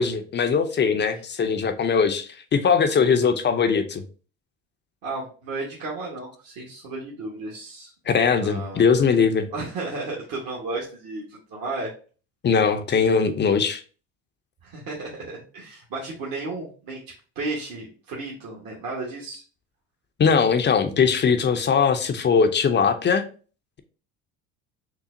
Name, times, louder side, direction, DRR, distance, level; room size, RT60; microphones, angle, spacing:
voice 1, 0.0-4.0 8.1-9.5 12.4-13.8 20.2-23.3, left 6 dB, 30° left, 8 dB, 0.5 m, -20 dB
voice 2, 5.0-8.1 8.4-8.9 9.5-11.9 14.6-17.0 17.3-19.4, right 3 dB, 55° right, -4 dB, 1.3 m, -33 dB
5.8 x 2.0 x 2.5 m, 0.39 s
supercardioid pair, 80°, 39 cm